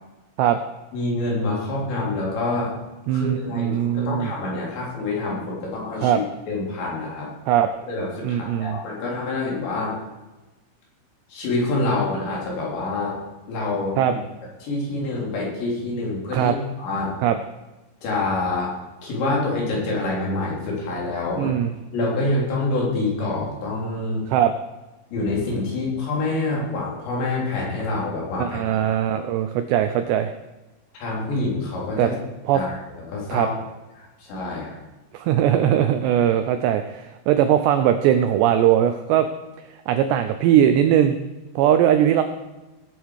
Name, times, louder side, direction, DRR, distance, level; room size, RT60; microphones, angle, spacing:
voice 1, 0.9-2.7 3.1-7.3 7.9-10.0 11.3-13.2 13.5-14.2 14.6-17.1 18.0-18.7 19.0-21.5 21.9-24.2 25.1-28.6 31.0-32.2 32.5-32.7 33.1-33.5 34.0-34.8, left 2 dB, 65° left, -4 dB, 5.5 m, -26 dB
voice 2, 3.1-4.3 6.0-6.2 7.5-7.7 8.2-8.8 14.0-14.1 16.3-16.5 17.2-17.4 21.4-21.7 24.3-24.5 28.4-30.3 32.0-32.1 32.5-32.6 33.3-33.5 35.1-39.3 39.9-41.2 41.6-42.2, right 10 dB, 85° right, 8 dB, 2.5 m, -20 dB
18.5 x 8.4 x 4.7 m, 1.1 s
omnidirectional pair, 5.6 m